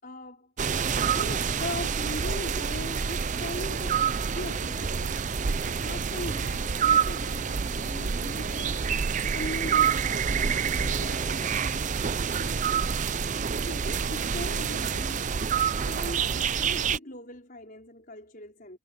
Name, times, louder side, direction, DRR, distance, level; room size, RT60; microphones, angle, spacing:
voice 1, 0.0-11.7 13.6-15.5 15.9-18.8, left 1 dB, 45° left, 5.3 m, -40 dB
sound 1, 0.6-17.0, right 6 dB, 35° right, 0.5 m, -27 dB
head